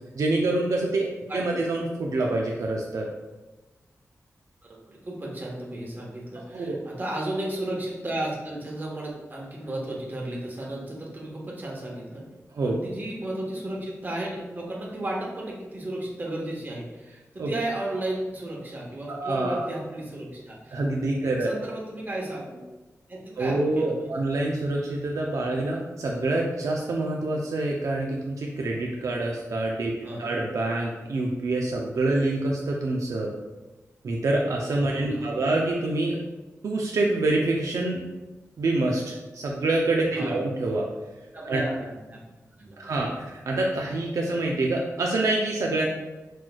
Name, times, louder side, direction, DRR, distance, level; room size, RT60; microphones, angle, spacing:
voice 1, 0.1-1.1 1.3-3.1 6.5-6.8 12.5-12.8 17.4-17.5 19.1-19.7 20.7-21.5 23.4-29.9 30.2-33.3 34.0-36.2 36.6-38.1 38.6-40.8 41.4-41.6 42.8-45.9, right 2 dB, 75° right, -1 dB, 0.5 m, -26 dB
voice 2, 4.7-12.2 12.6-20.8 21.2-22.6 23.1-24.1 30.0-30.3 34.9-35.4 40.1-40.4 41.3-42.2 42.6-43.2, right 1 dB, 35° right, -3 dB, 1.1 m, -34 dB
5.9 x 3.1 x 2.3 m, 1.1 s
wide cardioid pair, 110°, 6 cm